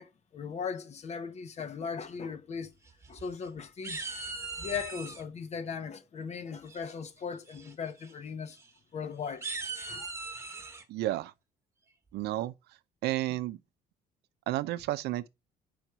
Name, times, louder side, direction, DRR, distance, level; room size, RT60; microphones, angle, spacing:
voice 1, 0.0-2.7 3.1-4.1 4.4-8.6 8.9-9.4 9.9-10.1, left 6 dB, 40° left, 0.9 m, -38 dB
sound 1, 2.9-3.5 3.8-5.2 6.7-7.1 7.5-7.7 8.0-8.1 8.5-8.6 9.2-10.8, right 3 dB, 15° right, 1.3 m, -39 dB
voice 2, 10.9-11.3 12.1-12.5 13.0-13.6 14.5-15.3, right 15 dB, 75° right, 0.5 m, -31 dB
5.0 x 4.5 x 5.5 m
cardioid pair, 110°, 17 cm